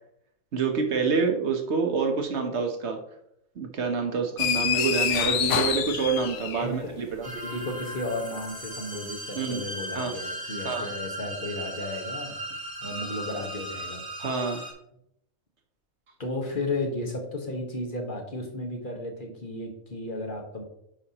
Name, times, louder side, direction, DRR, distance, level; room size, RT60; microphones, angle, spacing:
voice 1, 0.5-3.0 3.6-7.3 9.3-9.6 9.9-10.1 10.6-10.9 14.2-14.6, right 5 dB, 55° right, 4 dB, 1.2 m, -27 dB
sound 1, 4.4-6.9, left 8 dB, 65° left, 0.9 m, -26 dB
voice 2, 6.6-6.9 7.2-12.4 12.8-14.0 16.2-20.6, left 2 dB, 40° left, 1 dB, 1.5 m, -34 dB
sound 2, 7.2-14.7, right 1 dB, 15° right, 1.2 m, -37 dB
8.8 x 5.7 x 2.9 m, 0.75 s
omnidirectional pair, 1.4 m